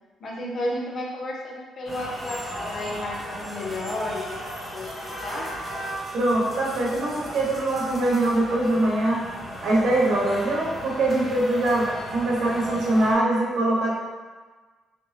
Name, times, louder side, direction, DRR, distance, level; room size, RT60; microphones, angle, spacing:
voice 1, 0.2-5.5, left 1 dB, 55° left, -2 dB, 0.8 m, -32 dB
sound 1, 1.9-13.1, equal, 5° right, 1.1 m, -36 dB
voice 2, 6.1-9.2 9.6-14.0, right 1 dB, 75° right, -5 dB, 1.0 m, -23 dB
3.3 x 2.6 x 3.3 m, 1.4 s
cardioid pair, 90°, 0 cm